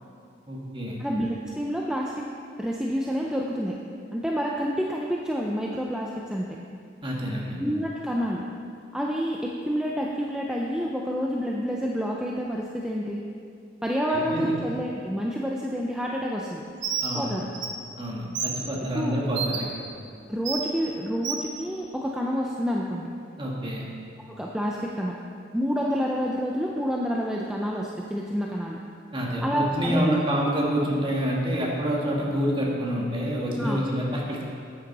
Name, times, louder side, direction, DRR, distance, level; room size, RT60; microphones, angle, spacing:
voice 1, 0.5-1.0 7.0-7.6 14.1-14.5 17.0-17.3 18.0-19.7 23.4-23.9 29.1-34.4, equal, 25° right, -3 dB, 1.7 m, -27 dB
voice 2, 1.0-2.3 2.6-3.8 4.1-6.5 7.6-8.4 8.9-13.2 13.8-16.6 17.1-17.5 18.9-19.2 20.3-23.1 24.3-25.2 25.5-28.8 29.4-30.3 33.6-33.9, equal, 5° right, -2 dB, 0.5 m, -28 dB
Bird, 16.8-17.1 17.5-17.7 18.4-18.5 19.4-19.6 20.5-20.6 21.2-21.4, right 7 dB, 85° right, 1.3 m, -28 dB
10.5 x 8.7 x 4.1 m, 2.4 s
head